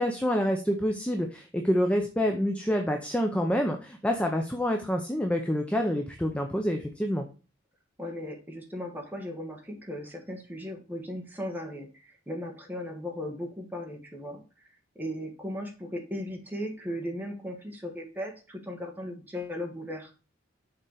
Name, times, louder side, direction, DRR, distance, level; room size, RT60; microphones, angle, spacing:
voice 1, 0.0-7.3, equal, 5° left, 3 dB, 0.6 m, -27 dB
voice 2, 8.0-14.7 14.9-20.1, equal, 10° right, 1 dB, 1.5 m, -37 dB
6.8 x 4.4 x 4.9 m, 0.34 s
head